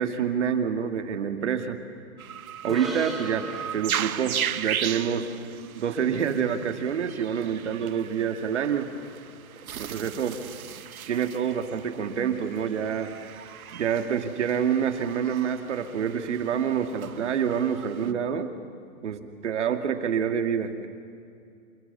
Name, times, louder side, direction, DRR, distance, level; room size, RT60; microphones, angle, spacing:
voice 1, 0.0-1.8 2.6-5.3 5.8-8.9 9.8-10.3 11.1-13.1 13.7-18.5 19.0-20.9, right 7 dB, 55° right, 7 dB, 2.4 m, -27 dB
sound 1, 2.2-18.1, right 9 dB, 85° right, 1.2 m, -37 dB
sound 2, 2.7-6.2, right 1 dB, ahead, 0.6 m, -41 dB
30.0 x 28.0 x 7.0 m, 2.4 s
hypercardioid pair, 175°, 41 cm